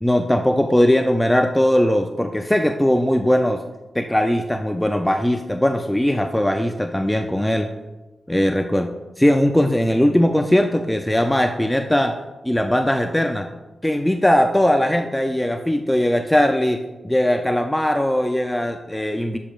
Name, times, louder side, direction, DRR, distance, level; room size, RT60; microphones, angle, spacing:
voice 1, 0.0-3.6 3.9-7.7 8.3-8.9 9.2-12.2 12.4-13.5 13.8-19.4, left 1 dB, 10° left, 6 dB, 0.4 m, -19 dB
7.3 x 6.9 x 2.4 m, 1.1 s
cardioid pair, 70°, 0 cm